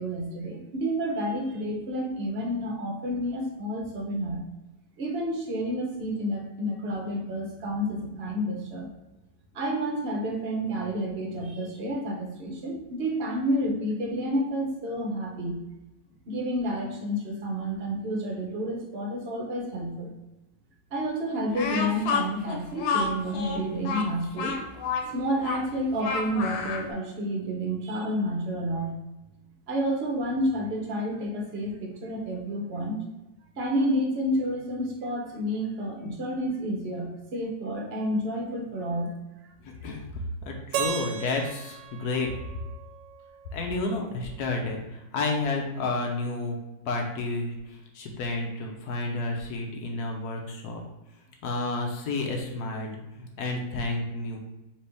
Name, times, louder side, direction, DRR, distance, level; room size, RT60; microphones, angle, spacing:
voice 1, 0.0-4.4 5.0-8.9 9.5-15.6 16.3-20.1 20.9-24.6 25.1-29.0 29.7-33.0 33.6-39.1, equal, 50° right, -1 dB, 0.7 m, -30 dB
Speech, 21.5-26.9, left 5 dB, 90° left, 1.4 m, -30 dB
voice 2, 39.6-42.3 43.5-46.6 46.9-50.8 51.4-54.4, left 2 dB, 65° left, 1 dB, 1.1 m, -31 dB
Keyboard (musical), 40.7-43.7, right 7 dB, 75° right, 1.1 m, -35 dB
4.3 x 3.0 x 3.3 m, 1.0 s
omnidirectional pair, 2.0 m